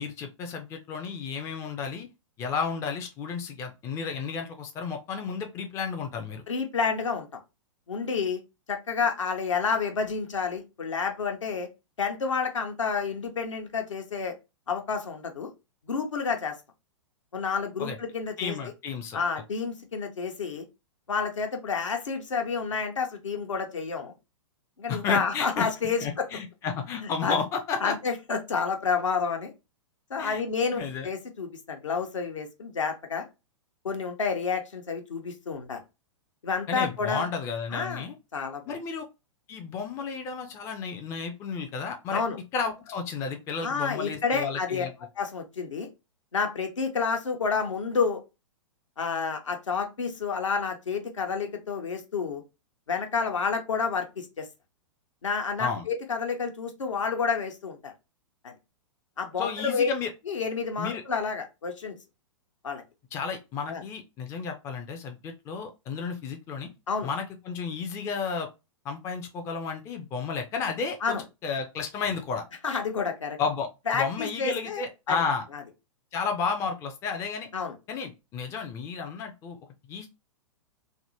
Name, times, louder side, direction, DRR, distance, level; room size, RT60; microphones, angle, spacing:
voice 1, 0.0-2.1 2.4-6.4 17.8-18.0 18.4-19.2 24.9-25.7 26.0-28.0 30.2-30.4 30.7-31.1 36.7-38.1 38.7-39.0 39.5-42.2 42.5-44.9 55.6-55.9 59.4-60.1 60.8-61.0 63.1-66.7 67.0-68.5 68.8-71.2 71.4-72.4 73.4-73.7 73.9-75.4 76.1-77.5 77.9-79.6 79.9-80.1, left 5 dB, 15° left, 5 dB, 0.4 m, -32 dB
voice 2, 6.5-7.3 7.9-8.4 8.7-11.7 12.0-14.3 14.7-15.5 15.9-16.5 17.3-18.6 19.1-20.6 21.1-24.1 24.8-26.3 27.0-27.4 27.8-29.5 30.1-33.2 33.8-35.8 36.4-37.3 37.7-38.1 38.3-38.8 42.1-42.4 43.6-44.9 45.2-45.9 46.3-48.2 49.0-52.4 52.9-54.5 55.2-57.9 58.4-58.5 59.2-59.9 60.3-61.9 62.6-62.8 63.7-63.8 66.9-67.1 71.0-71.2 72.6-73.4 73.9-75.2 75.5-75.6 77.5-77.8, left 5 dB, 70° left, 4 dB, 0.8 m, -29 dB
3.4 x 2.0 x 2.8 m, 0.26 s
figure-of-eight pair, 105°, 16 cm